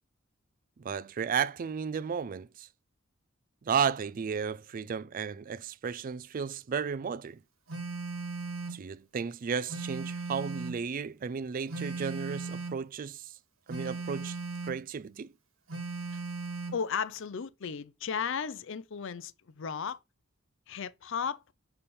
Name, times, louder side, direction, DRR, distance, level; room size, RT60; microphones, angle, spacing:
voice 1, 0.8-2.7 3.6-7.4 8.7-13.4 13.7-14.4 14.7-15.3, right 6 dB, 40° right, 0.3 m, -33 dB
Telephone, 7.7-8.8 9.7-10.8 11.7-12.8 13.7-14.8 15.7-16.8, right 4 dB, 85° right, 1.8 m, -37 dB
voice 2, 16.7-20.0 20.7-21.4, left 6 dB, 60° left, 0.5 m, -35 dB
7.0 x 3.4 x 4.2 m
head